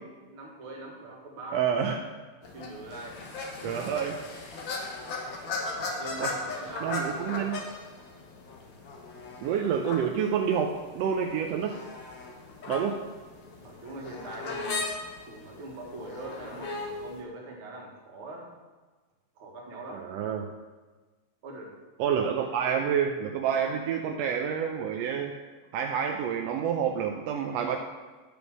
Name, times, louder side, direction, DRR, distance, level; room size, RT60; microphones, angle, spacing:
voice 1, 0.3-1.7 2.5-4.3 5.8-7.0 12.6-12.7 13.4-14.8 15.2-18.6 19.4-20.1 21.4-21.8 22.2-22.3, right 2 dB, 50° right, -1 dB, 2.3 m, -43 dB
voice 2, 1.5-2.0 3.6-4.2 6.2-6.4 6.8-7.6 9.4-11.7 12.7-13.0 19.9-20.5 22.0-25.3 25.7-27.8, right 7 dB, 80° right, 3 dB, 1.6 m, -28 dB
sound 1, 2.4-17.2, left 3 dB, 55° left, 1.5 m, -38 dB
11.0 x 5.2 x 6.1 m, 1.3 s
omnidirectional pair, 3.3 m